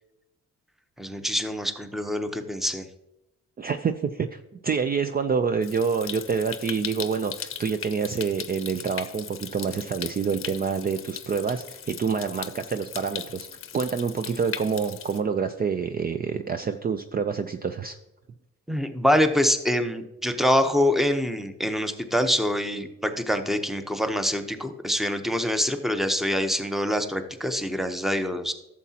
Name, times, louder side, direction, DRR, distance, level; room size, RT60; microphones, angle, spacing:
voice 1, 1.0-2.9 18.7-28.5, equal, ahead, 8 dB, 0.9 m, -25 dB
voice 2, 3.6-13.5 13.7-18.0, right 6 dB, 30° right, 9 dB, 0.5 m, -27 dB
Stream, 5.6-15.2, left 8 dB, 45° left, 0.7 m, -38 dB
12.0 x 7.3 x 2.9 m, 0.90 s
cardioid pair, 90°, 30 cm